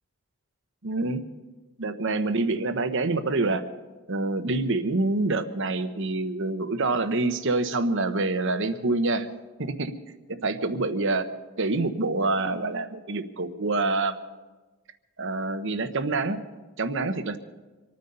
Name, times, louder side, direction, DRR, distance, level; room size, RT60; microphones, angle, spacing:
voice 1, 0.8-1.2 1.8-3.6 4.1-9.3 9.6-9.9 10.4-11.3 11.6-14.2 15.2-16.4 16.8-17.4, right 2 dB, 55° right, 10 dB, 1.0 m, -26 dB
26.0 x 9.6 x 5.4 m, 1.2 s
head